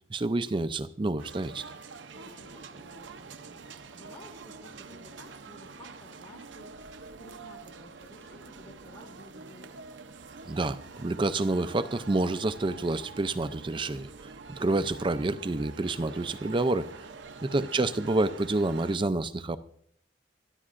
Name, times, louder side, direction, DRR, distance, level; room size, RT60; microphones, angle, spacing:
voice 1, 0.1-1.7 10.5-14.1 14.6-16.9 17.4-19.6, right 2 dB, 25° right, 12 dB, 0.5 m, -28 dB
sound 1, 1.2-19.0, right 4 dB, 75° right, 0.7 m, -46 dB
voice 2, 2.1-6.9 7.2-9.8, left 1 dB, 40° left, -1 dB, 1.9 m, -53 dB
23.5 x 13.0 x 2.5 m, 0.64 s
head